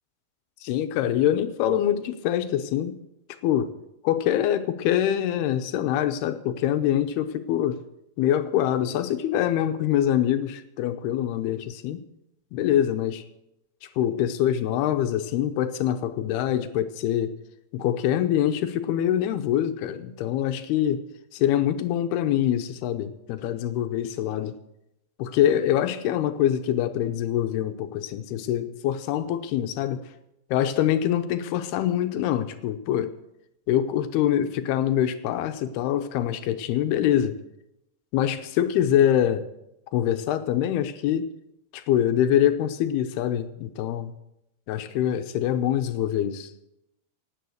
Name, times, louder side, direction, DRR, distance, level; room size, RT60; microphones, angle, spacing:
voice 1, 0.6-3.0 3.4-3.7 4.0-7.8 8.2-12.0 12.5-13.3 14.0-17.3 17.7-21.0 21.3-24.6 25.2-30.1 30.5-33.1 33.7-37.4 38.1-39.4 39.9-41.3 41.7-44.1 44.7-46.5, left 11 dB, 80° left, 10 dB, 2.8 m, -24 dB
17.5 x 9.6 x 6.5 m, 0.85 s
omnidirectional pair, 4.6 m